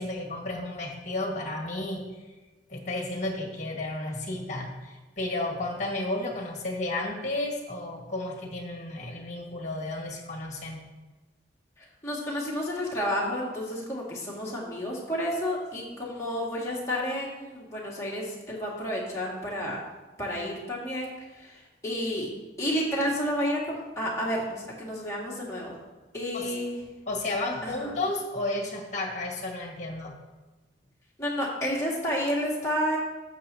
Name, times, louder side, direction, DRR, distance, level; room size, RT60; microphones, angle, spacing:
voice 1, 0.0-2.1 2.7-10.8 26.3-26.5 27.1-30.2, left 2 dB, 40° left, 0 dB, 1.8 m, -32 dB
voice 2, 12.0-19.8 20.2-22.3 22.6-25.7 26.1-26.8 27.6-27.9 31.2-33.0, equal, 15° left, -6 dB, 2.1 m, -30 dB
12.0 x 7.2 x 2.9 m, 1.2 s
head